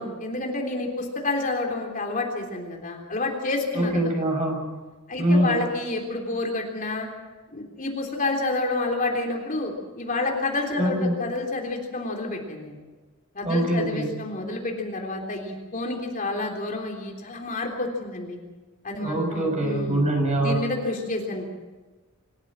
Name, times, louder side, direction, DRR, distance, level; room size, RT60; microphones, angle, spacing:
voice 1, 0.0-4.0 5.1-7.1 7.5-12.8 13.3-18.4 18.8-20.0 20.4-21.5, left 2 dB, 40° left, 1 dB, 3.5 m, -29 dB
voice 2, 3.7-4.7 5.2-5.6 10.8-11.2 13.4-14.1 19.0-20.6, right 1 dB, 30° right, 2 dB, 6.6 m, -23 dB
26.5 x 14.5 x 7.6 m, 1.3 s
head